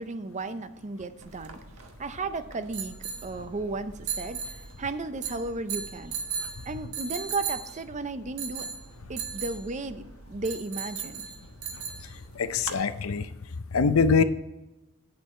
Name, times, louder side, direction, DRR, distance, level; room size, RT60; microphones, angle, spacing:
voice 1, 0.0-1.6 2.0-6.1 6.7-8.7 9.1-11.3, right 3 dB, 35° right, 11 dB, 0.6 m, -34 dB
sound 1, 1.2-12.8, right 6 dB, 80° right, 1.3 m, -38 dB
voice 2, 12.4-13.2 13.7-14.2, left 5 dB, 75° left, 12 dB, 0.6 m, -23 dB
8.9 x 7.7 x 4.3 m, 0.99 s
head